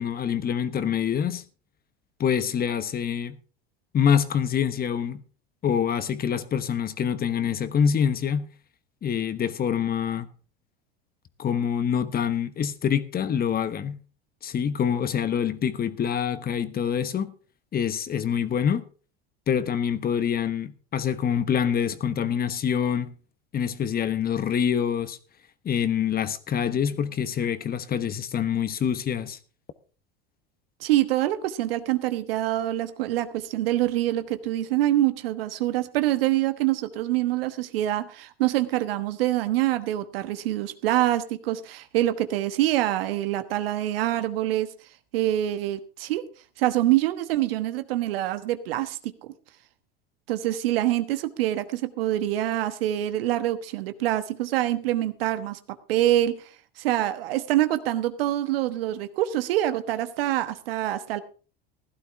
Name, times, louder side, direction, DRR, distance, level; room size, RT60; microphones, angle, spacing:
voice 1, 0.0-1.4 2.2-3.4 3.9-5.2 5.6-8.5 9.0-10.3 11.4-14.0 14.4-17.3 17.7-18.8 19.5-23.1 23.5-25.2 25.6-29.4, left 8 dB, 30° left, 1.2 m, -25 dB
voice 2, 30.8-44.7 45.1-46.2 46.6-49.3 50.3-55.6 55.9-56.4 56.8-61.2, right 14 dB, 80° right, 1.3 m, -25 dB
16.0 x 11.5 x 3.6 m
hypercardioid pair, 95°, 29 cm